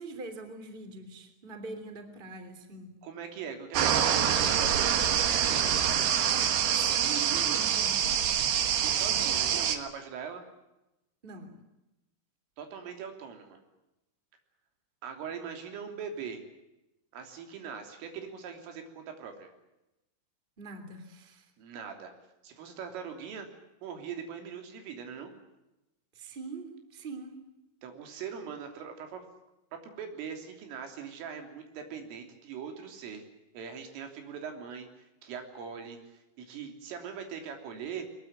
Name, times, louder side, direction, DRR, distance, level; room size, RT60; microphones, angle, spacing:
voice 1, 0.0-2.9 6.6-8.2 11.2-11.6 20.6-21.5 26.1-27.4, right 3 dB, 15° right, 8 dB, 2.3 m, -43 dB
voice 2, 3.0-5.0 8.8-10.4 12.6-13.6 15.0-16.4 17.1-19.5 21.6-22.1 22.4-23.5 23.8-25.3 27.8-29.2 29.8-33.3 33.5-36.0 36.4-38.1, right 7 dB, 85° right, 5 dB, 5.8 m, -41 dB
sound 1, 3.7-9.8, right 9 dB, 65° right, 3.2 m, -26 dB
22.5 x 21.5 x 9.0 m, 0.95 s
omnidirectional pair, 5.7 m